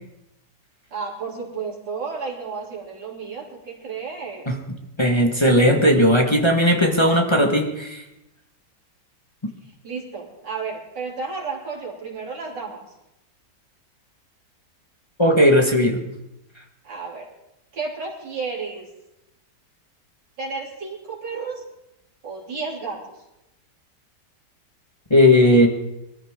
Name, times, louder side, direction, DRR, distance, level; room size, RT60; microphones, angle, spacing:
voice 1, 0.9-4.5 9.6-12.8 16.8-17.3 17.7-18.9 20.4-21.6 22.2-23.1, right 4 dB, 85° right, -3 dB, 3.8 m, -32 dB
voice 2, 5.0-8.0 15.2-16.0 25.1-25.7, left 1 dB, 15° left, 2 dB, 1.4 m, -16 dB
21.5 x 14.5 x 3.7 m, 0.90 s
omnidirectional pair, 1.9 m